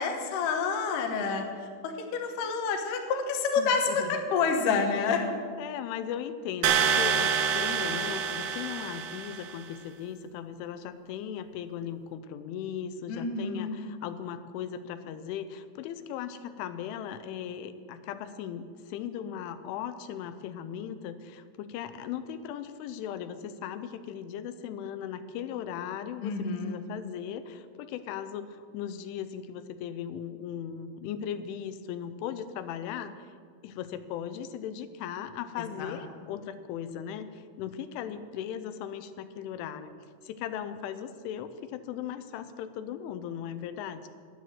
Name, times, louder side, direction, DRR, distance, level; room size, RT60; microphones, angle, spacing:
voice 1, 0.0-1.4 1.8-5.3 13.1-13.8 26.2-26.8 35.8-36.0, left 5 dB, 70° left, 4 dB, 2.1 m, -28 dB
voice 2, 3.6-4.2 5.6-33.1 33.6-39.9 40.2-44.1, left 9 dB, 90° left, 11 dB, 3.1 m, -38 dB
sound 1, 6.6-9.5, right 7 dB, 80° right, 2.9 m, -27 dB
10.5 x 9.7 x 7.4 m, 2.1 s
omnidirectional pair, 5.4 m